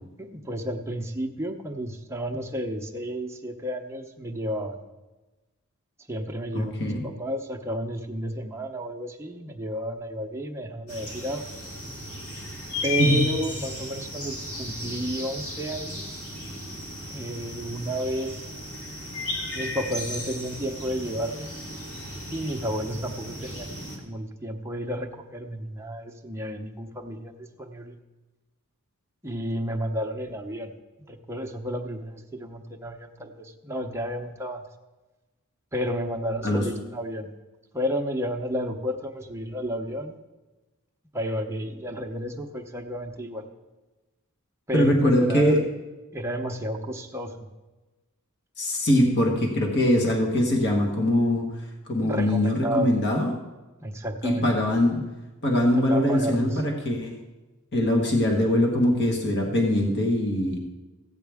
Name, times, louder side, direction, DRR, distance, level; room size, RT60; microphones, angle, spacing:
voice 1, 0.2-4.8 6.1-11.4 12.8-16.2 17.1-18.5 19.5-21.5 22.3-27.9 29.2-30.7 31.1-34.6 35.7-37.3 37.7-40.2 41.1-43.4 44.7-45.6 46.1-47.5 52.0-52.9 53.8-54.5 55.8-56.6, equal, 10° right, 2 dB, 0.8 m, -32 dB
voice 2, 6.5-7.0 13.0-13.2 36.4-36.7 44.7-45.6 48.6-51.5 51.9-53.3 54.2-55.0 55.4-57.2 57.7-60.6, left 1 dB, 50° left, 1 dB, 1.4 m, -22 dB
sound 1, 10.9-24.0, left 2 dB, 80° left, 2.4 m, -35 dB
14.5 x 9.0 x 3.5 m, 1.2 s
head